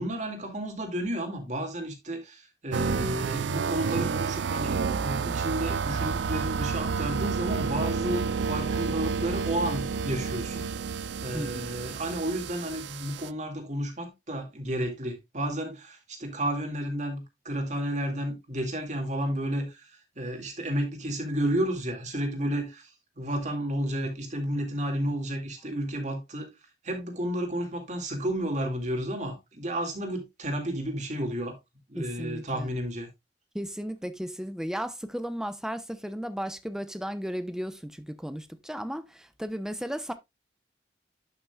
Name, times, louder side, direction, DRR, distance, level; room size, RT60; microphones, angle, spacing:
voice 1, 0.0-10.7 11.2-22.9 23.2-26.5 26.8-31.6 31.9-33.1, right 1 dB, 40° right, 2.1 m, -32 dB
sound 1, 2.7-13.3, right 5 dB, 75° right, 0.4 m, -30 dB
voice 2, 11.3-11.7 31.9-32.7 33.5-40.1, equal, 5° right, 0.7 m, -35 dB
11.5 x 5.9 x 2.3 m
head